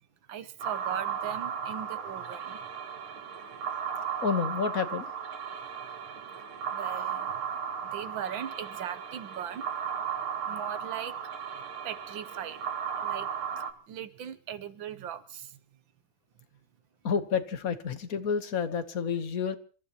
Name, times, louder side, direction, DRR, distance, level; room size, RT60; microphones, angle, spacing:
voice 1, 0.3-2.7 6.7-7.4 7.8-9.7 10.5-11.2 11.8-12.6 13.0-13.3 13.6-15.6, right 9 dB, 70° right, 1.7 m, -39 dB
sound 1, 0.6-13.7, right 7 dB, 90° right, 2.3 m, -35 dB
voice 2, 4.2-5.1 17.0-19.6, left 6 dB, 50° left, 1.5 m, -29 dB
29.5 x 15.0 x 3.0 m
omnidirectional pair, 2.3 m